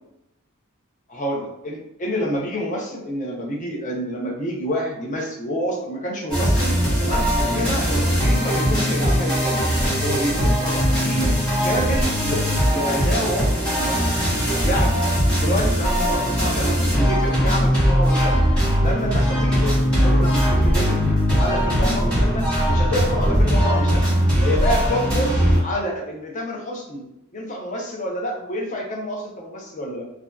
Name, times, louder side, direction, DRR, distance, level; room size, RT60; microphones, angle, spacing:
voice 1, 1.1-6.7 7.0-14.1 14.6-15.0 15.3-18.5 18.8-21.0 21.4-24.1 24.4-27.0 27.3-30.0, equal, 35° left, -1 dB, 0.5 m, -28 dB
sound 1, 6.3-25.6, equal, 5° left, 1.1 m, -20 dB
2.5 x 2.2 x 2.2 m, 0.83 s
head